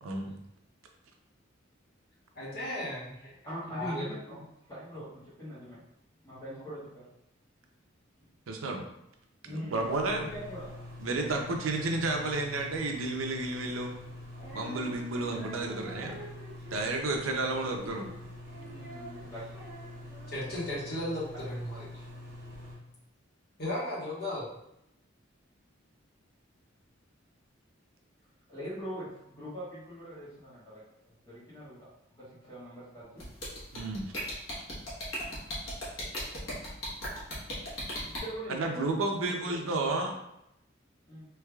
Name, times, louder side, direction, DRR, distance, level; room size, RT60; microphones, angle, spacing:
voice 1, 0.0-0.4 8.5-8.8 9.5-10.2 11.0-14.0 14.5-16.2 16.7-18.1 33.7-34.1 38.5-40.1, right 2 dB, 85° right, 3 dB, 0.6 m, -31 dB
voice 2, 2.3-3.1 3.7-4.1 20.3-22.0 23.6-24.5, left 1 dB, 50° left, -7 dB, 1.3 m, -35 dB
voice 3, 3.4-4.4 4.7-5.8 6.2-7.0 9.4-10.9 11.5-11.6 18.5-19.4 28.5-31.9 32.2-33.3 38.1-38.7 39.4-39.6 41.1-41.2, equal, 20° left, -11 dB, 1.2 m, -42 dB
sound 1, 9.8-22.7, left 1 dB, 45° right, 1.1 m, -45 dB
Female singing, 14.3-20.7, right 1 dB, 15° right, 1.2 m, -49 dB
sound 2, 33.2-38.2, equal, 80° left, 1.3 m, -36 dB
3.4 x 3.2 x 2.3 m, 0.82 s
head